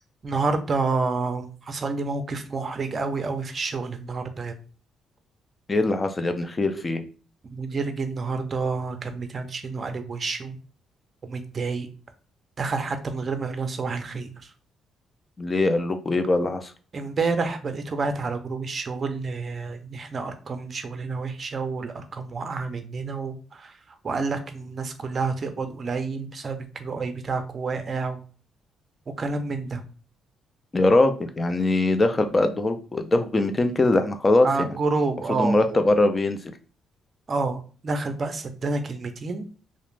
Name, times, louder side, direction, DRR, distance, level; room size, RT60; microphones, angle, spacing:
voice 1, 0.2-4.5 7.5-10.6 11.2-11.9 12.6-14.3 16.9-23.7 24.0-28.2 29.2-29.8 34.4-35.8 37.3-39.4, right 4 dB, 40° right, 0.5 m, -29 dB
voice 2, 5.7-7.1 15.4-16.7 30.7-34.8 35.4-36.4, left 2 dB, 25° left, 0.4 m, -22 dB
2.4 x 2.1 x 3.1 m
cardioid pair, 90°, 0 cm